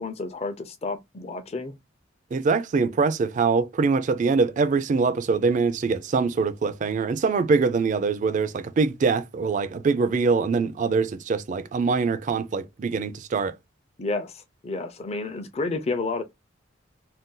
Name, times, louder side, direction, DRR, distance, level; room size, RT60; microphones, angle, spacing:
voice 1, 0.0-1.7 14.0-16.2, left 3 dB, 30° left, 0.5 m, -30 dB
voice 2, 2.3-13.5, right 4 dB, 40° right, 0.3 m, -23 dB
2.6 x 2.2 x 3.7 m
head